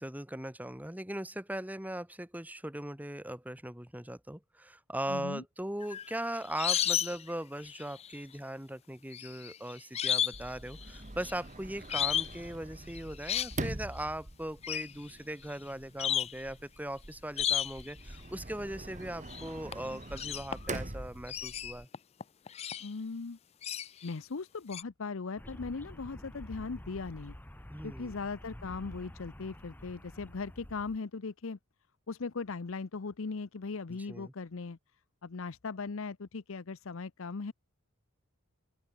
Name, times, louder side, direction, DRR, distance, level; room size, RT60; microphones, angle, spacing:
voice 1, 0.0-21.9 27.7-28.1 33.9-34.3, right 1 dB, 5° right, 1.7 m, -39 dB
voice 2, 5.1-5.4 22.8-23.4 24.0-27.3 27.8-31.6 32.1-34.8 35.2-37.5, left 4 dB, 65° left, 0.7 m, -39 dB
sound 1, 5.8-7.3 7.6-8.2 9.1-10.4 10.7-11.3 11.9-12.4 12.9-13.6 14.6-14.9 15.5-15.6 16.0-16.4 17.4-17.9 19.3-19.5 19.7-20.8 21.3-22.9 23.6-24.1 24.7-24.8, left 10 dB, 30° left, 0.4 m, -33 dB
Sliding door, 10.3-21.9, right 2 dB, 35° right, 2.1 m, -44 dB
sound 2, 25.4-31.0, equal, 10° left, 1.0 m, -48 dB
open air
head